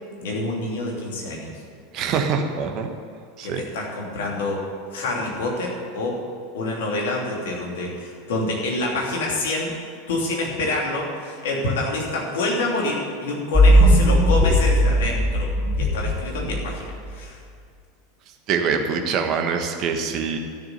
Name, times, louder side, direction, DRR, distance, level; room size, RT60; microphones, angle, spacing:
voice 1, 0.2-1.5 2.0-2.2 3.4-4.6 4.9-6.2 6.5-9.7 10.1-15.5 15.8-17.4, left 2 dB, 60° left, -2 dB, 3.1 m, -27 dB
voice 2, 1.9-2.9 3.4-3.6 18.5-20.4, right 6 dB, 40° right, 4 dB, 1.5 m, -24 dB
sound 1, 13.5-17.1, equal, 5° left, 3.6 m, -18 dB
12.5 x 7.1 x 9.8 m, 2.2 s
figure-of-eight pair, 80°, 0 cm